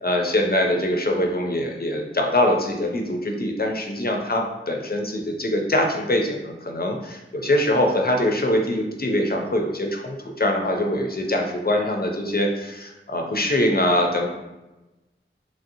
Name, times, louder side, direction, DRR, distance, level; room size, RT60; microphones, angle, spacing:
voice 1, 0.0-14.3, left 1 dB, 50° left, 2 dB, 0.4 m, -23 dB
3.0 x 2.7 x 2.6 m, 1.0 s
wide cardioid pair, 45°, 21 cm